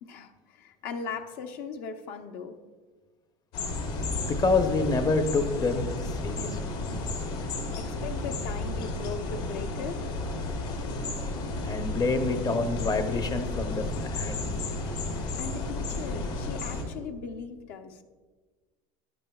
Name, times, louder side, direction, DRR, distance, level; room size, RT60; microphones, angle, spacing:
voice 1, 0.0-2.6 7.8-10.1 15.4-18.0, left 5 dB, 50° left, 6 dB, 0.9 m, -38 dB
sound 1, 3.5-16.8, left 2 dB, 80° left, 2.9 m, -32 dB
voice 2, 4.2-6.8 11.6-13.8 14.1-14.5, left 3 dB, 20° left, 8 dB, 0.8 m, -27 dB
14.0 x 10.5 x 2.4 m, 1.4 s
supercardioid pair, 120°, 19 cm